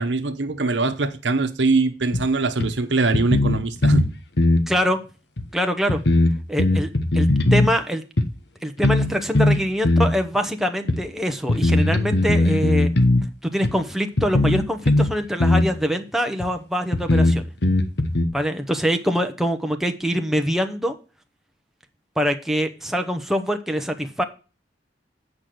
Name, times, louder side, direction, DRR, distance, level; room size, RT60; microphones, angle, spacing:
voice 1, 0.0-4.0, right 3 dB, 70° right, 1.0 m, -22 dB
sound 1, 2.1-2.2 2.6-2.7 3.1-4.1 4.4-4.6 5.4-5.5 5.9-7.7 8.2-8.3 8.8-9.1 9.3-10.1 10.9-11.0 11.5-13.3 13.6-13.7 14.2-15.1 15.4-15.7 16.4-16.5 16.9-18.3, left 2 dB, 65° left, 1.2 m, -18 dB
voice 2, 4.7-5.0 5.5-6.0 6.5-8.0 8.6-12.9 13.4-17.4 18.3-20.9 22.2-24.2, equal, ahead, 0.9 m, -24 dB
8.4 x 5.1 x 7.7 m
head